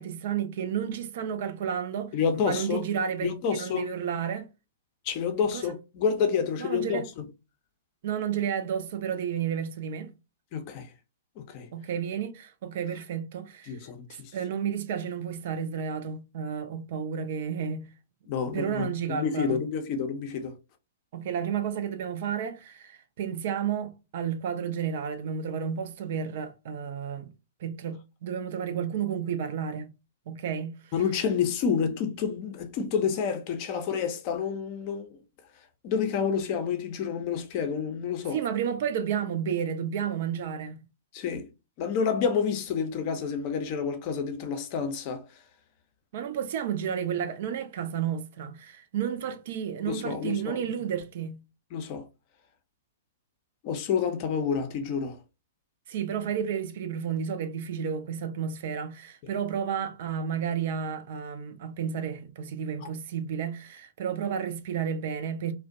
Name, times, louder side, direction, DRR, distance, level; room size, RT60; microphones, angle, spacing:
voice 1, 0.0-2.1 2.4-4.5 5.5-5.6 6.6-7.1 8.0-10.1 11.7-13.8 14.1-17.9 18.5-19.6 21.1-27.3 27.6-29.9 30.3-30.9 38.3-40.8 46.1-51.4 55.9-65.5, right 8 dB, 50° right, 0.4 m, -31 dB
voice 2, 2.1-2.8 3.2-3.9 5.0-7.3 10.5-10.9 11.4-11.7 13.7-14.3 18.3-20.6 30.9-35.2 35.8-38.4 41.1-41.5 41.8-45.4 49.9-50.7 51.7-52.1 53.6-55.2 62.8-62.9, left 6 dB, 40° left, 0.5 m, -29 dB
2.4 x 2.1 x 2.5 m
figure-of-eight pair, 105°, 0 cm